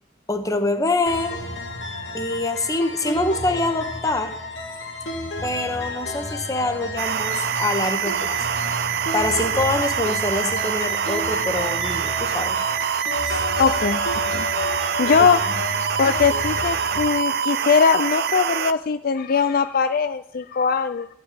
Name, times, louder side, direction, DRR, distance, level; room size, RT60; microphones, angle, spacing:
voice 1, 0.3-1.4 2.1-4.4 5.4-8.4 9.1-12.6 13.2-13.4, left 2 dB, 20° left, 7 dB, 1.2 m, -25 dB
sound 1, 1.1-17.1, left 2 dB, 70° left, 2.1 m, -31 dB
sound 2, 7.0-18.7, right 8 dB, 55° right, 0.5 m, -25 dB
voice 2, 13.6-15.4 16.0-21.1, left 5 dB, 50° left, 11 dB, 0.4 m, -21 dB
13.5 x 5.7 x 8.8 m, 0.74 s
head